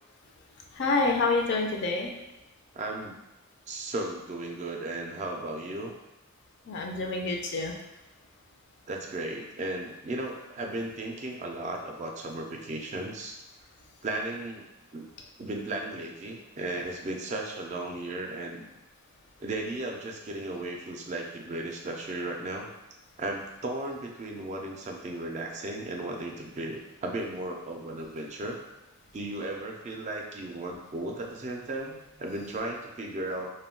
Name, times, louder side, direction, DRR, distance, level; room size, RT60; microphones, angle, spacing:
voice 1, 0.7-2.1 6.7-7.7, left 3 dB, 55° left, 1 dB, 0.4 m, -27 dB
voice 2, 2.7-3.2 3.7-5.9 8.9-13.4 14.0-14.7 14.9-15.0 15.4-18.6 19.4-22.7 23.2-28.6 29.1-33.5, right 2 dB, 35° right, 1 dB, 0.3 m, -35 dB
2.2 x 2.2 x 3.6 m, 0.97 s
head